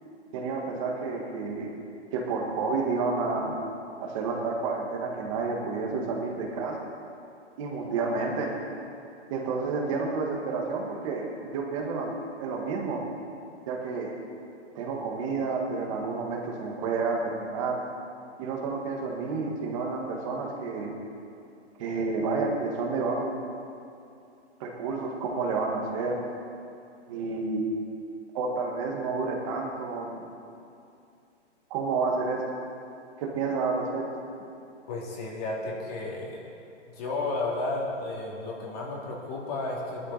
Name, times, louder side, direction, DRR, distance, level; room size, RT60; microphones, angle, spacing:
voice 1, 0.3-1.8 2.1-3.6 4.0-6.9 7.6-8.6 9.3-13.0 13.7-14.1 14.8-17.8 18.4-20.9 21.8-23.4 24.6-26.2 27.1-27.8 28.3-30.2 31.7-32.4 33.2-34.1, right 4 dB, 25° right, 0 dB, 2.0 m, -30 dB
voice 2, 34.9-36.4 36.9-40.1, left 2 dB, 30° left, -3 dB, 2.9 m, -33 dB
19.0 x 12.5 x 4.3 m, 2.6 s
hypercardioid pair, 160°, 36 cm